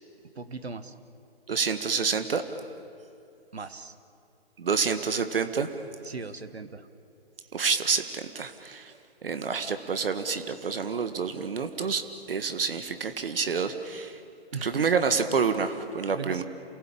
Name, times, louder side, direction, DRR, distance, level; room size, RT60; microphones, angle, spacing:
voice 1, 0.3-0.9 3.5-3.9 6.0-6.9 14.5-14.8 16.1-16.4, right 4 dB, 85° right, 11 dB, 1.5 m, -38 dB
voice 2, 1.5-2.4 4.6-5.7 7.5-8.9 9.2-14.2 14.6-16.4, right 5 dB, 65° right, 9 dB, 1.7 m, -28 dB
28.0 x 19.5 x 8.7 m, 2.6 s
figure-of-eight pair, 135°, 31 cm